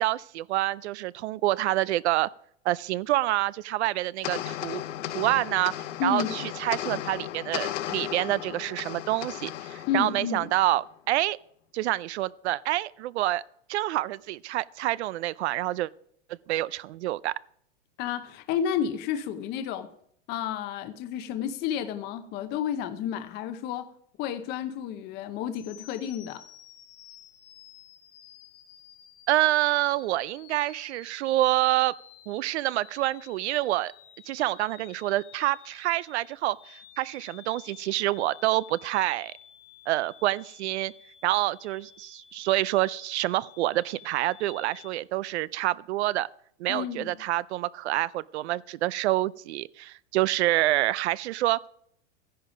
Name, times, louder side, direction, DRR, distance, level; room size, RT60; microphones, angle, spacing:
voice 1, 0.0-2.3 2.6-4.8 5.1-11.4 11.7-13.4 13.7-15.9 16.5-17.3 29.3-31.9 32.3-33.9 34.3-39.3 39.9-40.9 41.2-46.3 46.6-51.7, right 16 dB, 65° right, 0.5 m, -27 dB
sound 1, 4.2-10.9, left 12 dB, 85° left, 0.8 m, -35 dB
voice 2, 6.0-6.3 9.9-10.5 18.0-19.9 20.3-23.9 24.2-26.4 46.7-47.1, left 8 dB, 30° left, 0.8 m, -31 dB
sound 2, 25.5-44.9, left 11 dB, 70° left, 1.7 m, -52 dB
14.0 x 10.5 x 5.0 m
supercardioid pair, 155°, 36 cm